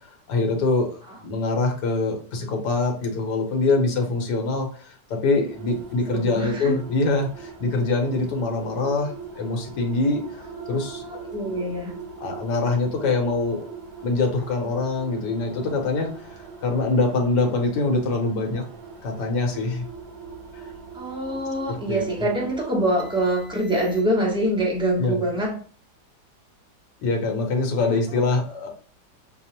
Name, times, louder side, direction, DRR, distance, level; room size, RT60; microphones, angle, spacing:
voice 1, 0.3-10.2 10.7-11.3 12.2-13.7 14.0-16.1 16.6-18.6 19.0-19.8 21.9-22.0 25.0-25.2 27.0-28.7, left 3 dB, 70° left, 3 dB, 1.4 m, -24 dB
sound 1, 5.4-24.4, right 5 dB, 45° right, 1.1 m, -41 dB
voice 2, 6.1-6.8 10.6-11.9 20.9-25.6 27.8-28.2, right 1 dB, 5° right, -2 dB, 0.4 m, -25 dB
6.0 x 2.0 x 2.8 m, 0.41 s
omnidirectional pair, 1.9 m